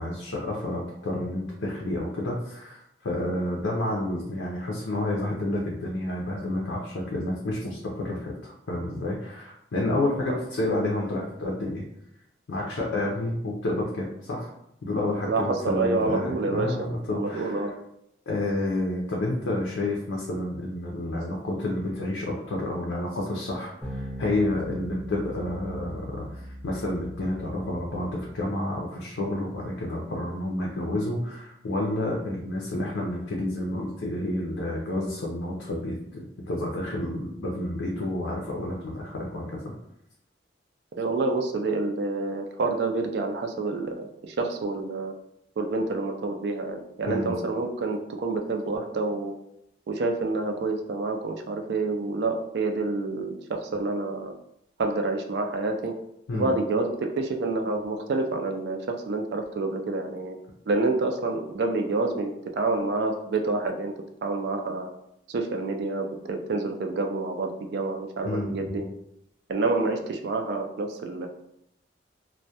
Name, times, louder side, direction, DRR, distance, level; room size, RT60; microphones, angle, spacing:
voice 1, 0.0-11.8 12.5-14.5 14.8-17.7 18.3-39.7 47.1-47.3 56.3-56.5 68.2-68.9, left 1 dB, 80° left, -2 dB, 0.4 m, -30 dB
voice 2, 15.2-17.7 41.0-45.1 45.6-49.3 49.9-54.3 54.8-56.0 56.3-60.4 60.7-63.9 64.2-64.9 65.3-68.8 69.5-71.3, right 3 dB, 60° right, 5 dB, 0.3 m, -28 dB
sound 1, 23.8-28.6, equal, 5° right, 0.7 m, -40 dB
2.2 x 2.1 x 2.7 m, 0.79 s
head